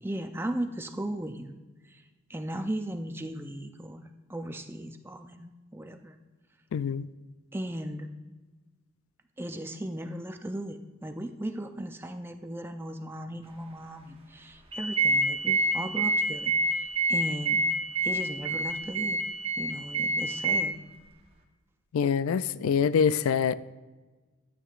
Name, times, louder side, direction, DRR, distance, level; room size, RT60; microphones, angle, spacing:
voice 1, 0.0-1.6 1.9-2.0 2.3-6.2 7.5-8.1 9.4-17.6 18.0-19.2 19.6-20.7, right 1 dB, 10° right, 0.5 m, -37 dB
voice 2, 6.7-7.1 21.9-23.5, left 7 dB, 75° left, 0.3 m, -25 dB
sound 1, 14.7-20.6, right 2 dB, 25° right, 1.0 m, -27 dB
12.0 x 8.5 x 2.5 m
head